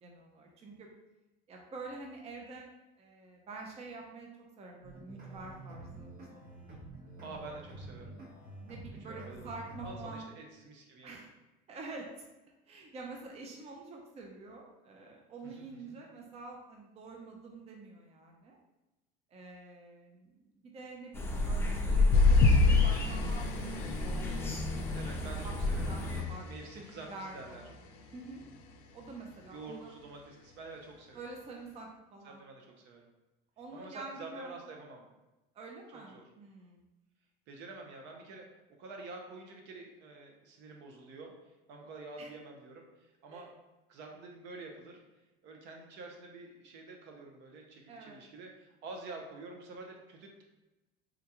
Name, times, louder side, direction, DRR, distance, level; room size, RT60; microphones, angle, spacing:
voice 1, 0.0-0.9 1.5-2.7 3.0-4.3 4.6-7.2 8.6-10.3 11.0-11.3 11.7-12.1 12.7-18.6 19.3-24.5 25.4-25.5 25.8-26.5 27.1-27.8 28.1-28.4 28.9-29.9 31.1-32.4 33.6-34.5 35.5-36.8 42.2-42.3 43.3-43.5 47.9-48.2, right 3 dB, 30° right, 1 dB, 0.5 m, -47 dB
sound 1, 4.8-10.1, right 1 dB, 45° right, 1.1 m, -48 dB
voice 2, 7.2-8.2 8.9-9.5 9.8-11.2 15.4-16.0 24.9-27.6 29.5-31.2 32.2-33.1 33.7-35.0 35.9-36.2 37.5-38.5 38.8-41.3 41.7-43.6 43.9-45.0 45.4-50.4, right 3 dB, 65° right, 2 dB, 0.7 m, -48 dB
sound 2, 21.1-26.2, left 2 dB, 10° left, 0.6 m, -31 dB
sound 3, 22.1-26.8 27.4-27.6 28.0-28.1, left 3 dB, 85° left, 0.4 m, -28 dB
3.7 x 2.2 x 2.9 m, 1.0 s
supercardioid pair, 110°, 20 cm